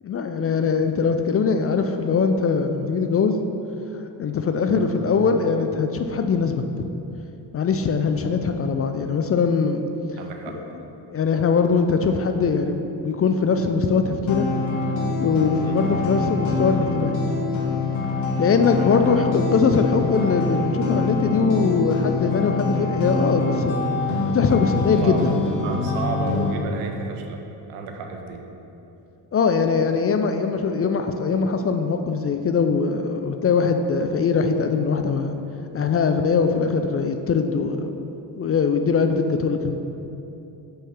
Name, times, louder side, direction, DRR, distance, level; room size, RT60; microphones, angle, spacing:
voice 1, 0.0-3.4 4.2-6.6 7.5-9.8 11.1-14.5 15.2-17.2 18.4-23.9 24.3-25.3 29.3-35.4 35.7-38.0 38.3-39.8, left 5 dB, 30° left, 6 dB, 0.4 m, -21 dB
voice 2, 10.2-10.6 15.6-15.8 18.8-19.0 25.0-28.5, right 4 dB, 80° right, 3 dB, 0.7 m, -32 dB
sound 1, 14.3-26.5, left 3 dB, 65° left, 1.0 m, -25 dB
5.4 x 3.7 x 5.7 m, 2.9 s
hypercardioid pair, 45°, 50 cm